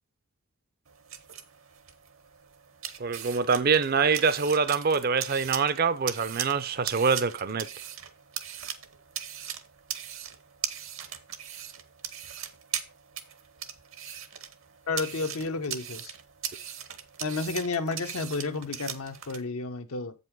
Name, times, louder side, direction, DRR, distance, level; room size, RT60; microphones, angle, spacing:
sound 1, 0.9-19.4, right 10 dB, 65° right, 1.0 m, -39 dB
voice 1, 3.0-7.7, right 5 dB, 45° right, 0.5 m, -25 dB
voice 2, 14.9-16.1 17.2-20.1, left 3 dB, 85° left, 0.8 m, -31 dB
8.0 x 5.4 x 4.6 m
head